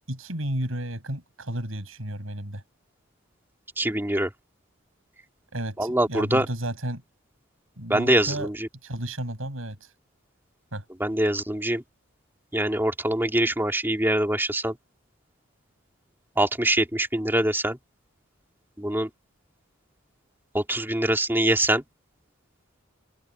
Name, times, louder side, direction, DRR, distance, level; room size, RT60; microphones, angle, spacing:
voice 1, 0.1-2.6 5.5-7.0 7.8-8.5 8.8-9.9 10.7-10.9, right 1 dB, 80° right, 6.0 m, -32 dB
voice 2, 3.8-4.3 5.8-6.5 7.9-8.7 11.0-11.8 12.5-14.7 16.4-17.8 18.8-19.1 20.5-21.8, right 1 dB, 10° right, 2.7 m, -24 dB
open air
head